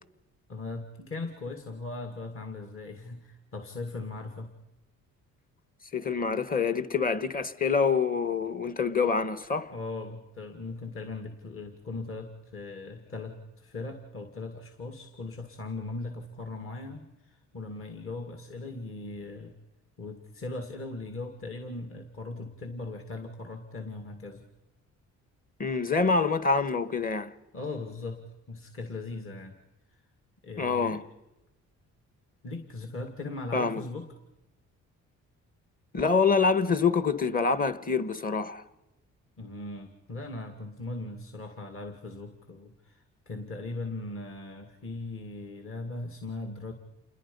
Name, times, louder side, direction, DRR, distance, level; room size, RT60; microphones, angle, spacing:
voice 1, 0.5-4.5 9.7-19.5 20.0-24.4 27.5-29.5 29.9-30.0 30.4-31.0 32.4-34.1 39.4-46.7, left 3 dB, 45° left, 2.3 m, -39 dB
voice 2, 5.9-9.7 25.6-27.3 30.6-31.0 33.5-33.8 35.9-38.6, left 5 dB, 30° left, 1.3 m, -26 dB
28.5 x 21.0 x 5.5 m
cardioid pair, 90°, 30 cm